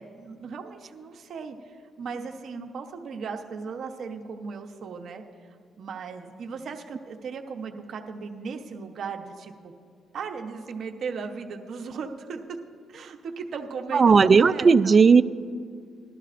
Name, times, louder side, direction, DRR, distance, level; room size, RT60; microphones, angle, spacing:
voice 1, 0.0-5.2 5.8-9.7 10.1-12.4 12.9-15.0, right 5 dB, 60° right, 4 dB, 0.9 m, -37 dB
voice 2, 13.9-15.2, right 5 dB, 40° right, 14 dB, 0.3 m, -16 dB
20.0 x 12.0 x 2.5 m, 2.2 s
cardioid pair, 90°, 0 cm